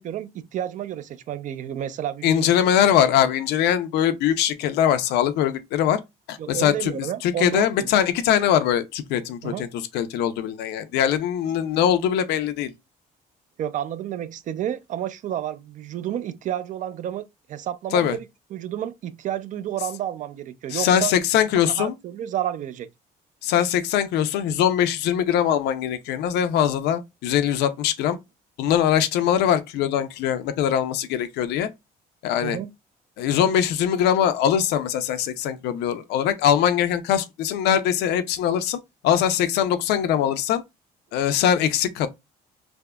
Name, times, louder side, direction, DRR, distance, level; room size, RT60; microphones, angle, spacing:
voice 1, 0.0-2.5 6.4-7.9 9.4-9.7 13.6-18.3 18.5-21.1 21.6-22.9 32.4-32.7, right 11 dB, 50° right, 0.4 m, -30 dB
voice 2, 2.2-6.0 6.3-12.7 17.9-18.2 20.7-21.9 23.4-28.2 28.6-31.7 32.2-32.6 33.2-38.8 39.0-40.6 41.1-42.1, left 9 dB, 80° left, 0.5 m, -22 dB
3.4 x 2.0 x 2.2 m
cardioid pair, 110°, 17 cm